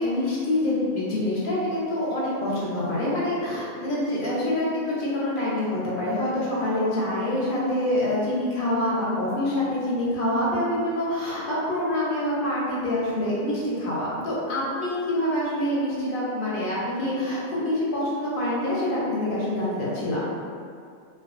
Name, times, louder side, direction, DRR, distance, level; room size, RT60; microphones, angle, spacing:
voice 1, 0.0-20.4, left 1 dB, 60° left, -7 dB, 0.6 m, -26 dB
2.4 x 2.3 x 2.4 m, 2.2 s
omnidirectional pair, 1.4 m